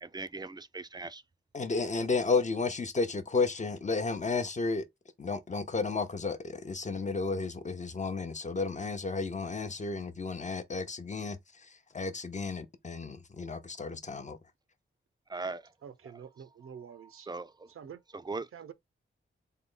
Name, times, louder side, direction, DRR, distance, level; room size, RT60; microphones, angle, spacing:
voice 1, 0.0-1.2 15.3-15.6 17.3-17.5 18.3-18.5, right 3 dB, 20° right, 0.4 m, -38 dB
voice 2, 1.5-4.8 5.2-14.4, left 4 dB, 35° left, 0.7 m, -32 dB
voice 3, 15.8-17.3 17.7-18.0 18.5-18.7, right 7 dB, 85° right, 0.6 m, -47 dB
3.7 x 2.1 x 3.7 m
wide cardioid pair, 85°, 21 cm